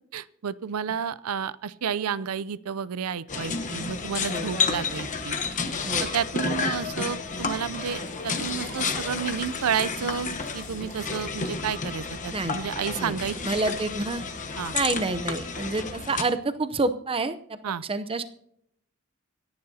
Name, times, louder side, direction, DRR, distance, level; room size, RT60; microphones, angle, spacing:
voice 1, 0.1-5.4 6.0-13.4 13.7-13.8 14.6-14.7 17.6-17.8, right 7 dB, 90° right, 18 dB, 0.5 m, -31 dB
sound 1, 3.3-16.2, left 5 dB, 35° left, 1.0 m, -31 dB
Gurgling / Sink (filling or washing) / Bathtub (filling or washing), 6.9-13.0, right 3 dB, 70° right, 4.1 m, -48 dB
voice 2, 13.4-14.2 14.7-17.6 17.9-18.2, right 3 dB, 25° right, 11 dB, 0.6 m, -28 dB
25.5 x 10.5 x 2.8 m, 0.73 s
head